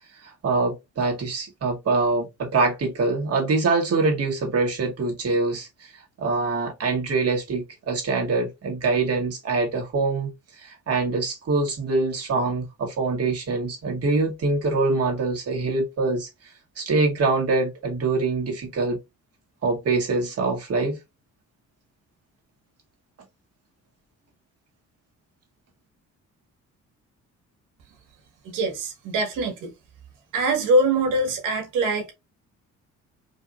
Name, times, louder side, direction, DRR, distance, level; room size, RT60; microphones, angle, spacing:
voice 1, 0.2-5.9 6.2-10.3 10.6-16.3 16.8-19.0 19.6-21.0, right 3 dB, 55° right, 2.0 m, -24 dB
voice 2, 28.5-29.7 30.3-32.1, right 2 dB, 90° right, 1.7 m, -23 dB
4.5 x 2.8 x 2.5 m
cardioid pair, 90°, 30 cm